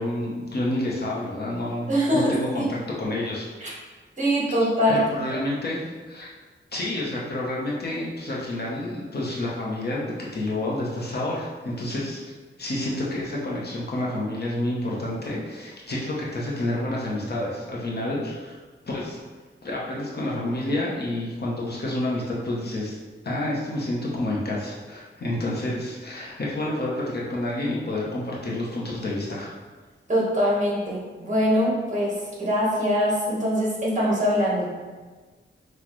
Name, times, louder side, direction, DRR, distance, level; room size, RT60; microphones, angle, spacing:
voice 1, 0.0-1.9 2.1-2.6 3.0-3.5 4.9-5.8 6.1-6.3 6.7-12.2 12.6-18.6 18.9-19.2 19.6-23.0 23.2-29.5, left 1 dB, 55° left, -5 dB, 0.9 m, -29 dB
voice 2, 1.9-2.7 3.6-3.7 4.2-5.0 5.3-5.4 30.1-34.7, equal, 40° right, -6 dB, 1.3 m, -23 dB
6.0 x 2.4 x 3.1 m, 1.3 s
wide cardioid pair, 135°, 20 cm